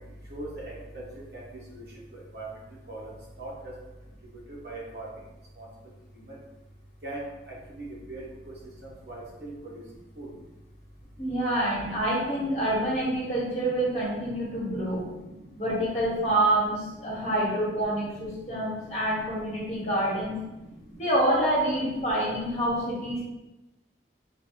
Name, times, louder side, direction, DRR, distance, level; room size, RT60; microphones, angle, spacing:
voice 1, 0.3-1.0 1.3-1.4 1.8-1.9 2.3-2.4 2.9-3.0 3.4-3.5 4.6-5.0 5.6-5.7 7.0-7.2 8.1-8.2 9.1-9.5 10.2-10.3, right 2 dB, 60° right, -5 dB, 1.2 m, -38 dB
voice 2, 11.2-15.0 15.6-20.3 21.0-23.2, right 1 dB, 40° left, -6 dB, 1.5 m, -27 dB
4.0 x 2.5 x 4.5 m, 1.0 s
head